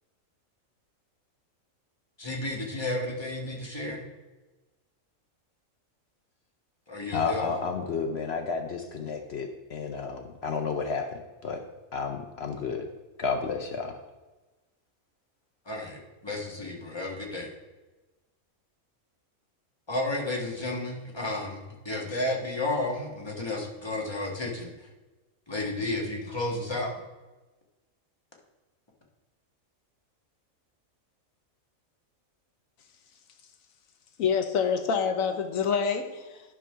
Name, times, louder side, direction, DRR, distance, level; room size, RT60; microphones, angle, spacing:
voice 1, 2.2-4.0 6.9-7.6 15.6-17.5 19.9-24.9 25.5-27.0, left 2 dB, 20° left, -1 dB, 1.4 m, -32 dB
voice 2, 7.1-11.6 11.9-12.8 13.2-14.0, left 5 dB, 60° left, 4 dB, 0.8 m, -31 dB
voice 3, 34.2-36.4, left 6 dB, 75° left, 6 dB, 1.2 m, -27 dB
11.0 x 3.7 x 5.6 m, 1.1 s
omnidirectional pair, 1.4 m